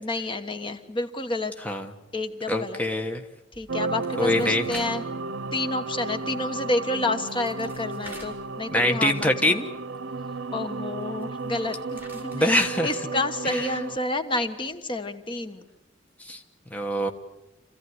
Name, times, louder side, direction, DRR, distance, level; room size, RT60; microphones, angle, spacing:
voice 1, 0.0-1.5 2.1-2.8 3.6-5.0 5.5-9.6 10.5-12.6 12.8-15.6, left 2 dB, 25° left, 7 dB, 1.3 m, -29 dB
voice 2, 2.5-3.2 4.2-4.6 8.7-9.6 12.3-12.9 13.4-13.7 16.2-16.4 16.7-17.1, left 1 dB, 10° left, 3 dB, 1.3 m, -24 dB
sound 1, 3.5-5.1 5.4-5.6 6.9-7.0 7.2-9.1 9.3-9.4 11.0-12.8, right 1 dB, 10° right, 5.1 m, -47 dB
sound 2, 3.7-14.0, right 3 dB, 90° right, 0.8 m, -33 dB
27.0 x 16.0 x 9.6 m, 0.96 s
head